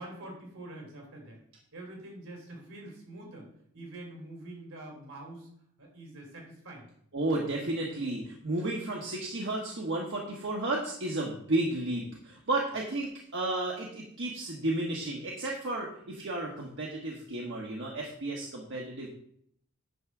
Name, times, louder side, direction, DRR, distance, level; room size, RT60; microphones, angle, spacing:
voice 1, 0.0-1.4 1.7-3.5 3.7-5.5 5.8-6.9, right 1 dB, 75° right, -1 dB, 3.3 m, -45 dB
voice 2, 7.1-19.1, right 2 dB, 60° right, -1 dB, 1.1 m, -33 dB
9.3 x 3.6 x 6.0 m, 0.67 s
head